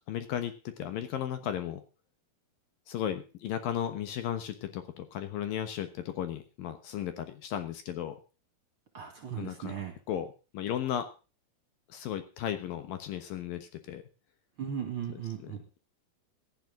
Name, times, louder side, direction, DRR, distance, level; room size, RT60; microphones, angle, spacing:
voice 1, 0.1-1.8 2.9-8.2 9.4-9.8 10.1-11.1 11.9-14.0 15.4-15.8, left 10 dB, 70° left, 9 dB, 2.7 m, -35 dB
voice 2, 8.9-10.0 14.6-15.6, right 9 dB, 40° right, 5 dB, 2.5 m, -37 dB
17.0 x 12.5 x 3.8 m, 0.33 s
omnidirectional pair, 4.6 m